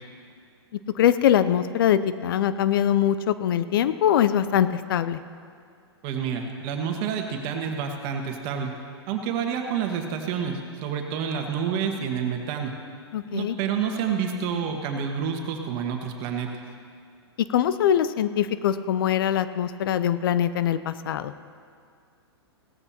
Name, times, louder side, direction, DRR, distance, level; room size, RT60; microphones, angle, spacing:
voice 1, 0.9-5.2 13.1-13.6 17.5-21.3, left 10 dB, 55° left, 13 dB, 0.5 m, -22 dB
voice 2, 6.0-8.7 9.1-12.7 13.3-16.5, right 7 dB, 40° right, 3 dB, 1.6 m, -28 dB
18.0 x 14.0 x 2.9 m, 2.3 s
figure-of-eight pair, 110°, 14 cm